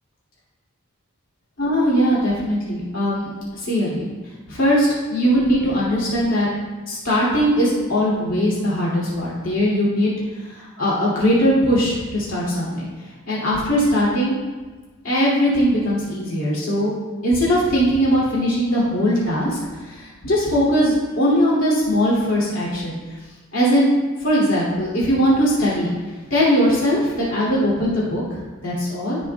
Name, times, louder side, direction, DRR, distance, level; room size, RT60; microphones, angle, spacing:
voice 1, 1.6-4.1 4.5-6.5 6.9-12.9 13.3-14.3 15.0-16.9 17.2-23.0 23.5-23.9 24.2-25.9 26.3-29.2, equal, 70° left, -7 dB, 2.5 m, -20 dB
16.0 x 5.4 x 2.3 m, 1.3 s
head